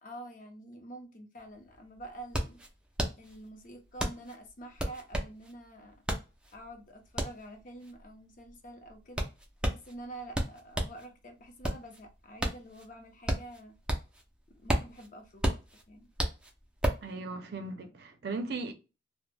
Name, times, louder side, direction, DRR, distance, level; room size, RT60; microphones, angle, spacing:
voice 1, 0.0-2.6 3.2-6.0 6.5-9.3 9.7-13.8 14.5-15.6 15.9-16.1, right 1 dB, 50° left, 0.6 m, -47 dB
sound 1, 1.4-1.5 1.7-11.0 11.4-14.3 14.5-17.1, right 1 dB, 5° right, 0.4 m, -33 dB
voice 2, 17.0-18.7, right 3 dB, 65° right, 0.5 m, -37 dB
2.1 x 2.1 x 3.1 m
head